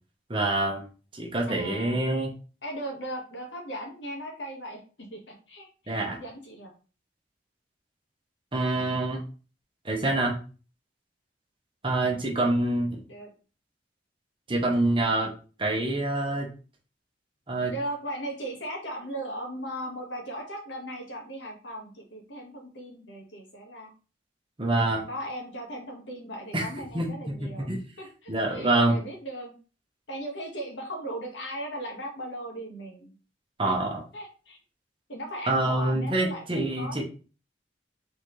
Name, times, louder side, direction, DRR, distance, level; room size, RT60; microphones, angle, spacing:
voice 1, 0.3-0.9 1.1-2.3 5.9-6.2 8.5-9.2 9.8-10.3 11.8-13.0 14.5-15.3 15.6-16.5 17.5-17.7 24.6-25.0 26.5-26.7 26.9-27.8 28.3-29.0 33.6-34.0 35.5-37.0, right 2 dB, 30° right, 1 dB, 1.0 m, -26 dB
voice 2, 1.5-2.0 2.6-6.7 12.0-12.3 13.1-13.3 17.7-23.9 25.1-27.7 28.0-29.5 30.1-33.1 33.6-33.7 34.1-34.6 35.1-37.0, right 1 dB, 85° left, 1 dB, 1.6 m, -38 dB
4.1 x 4.0 x 3.2 m, 0.36 s
head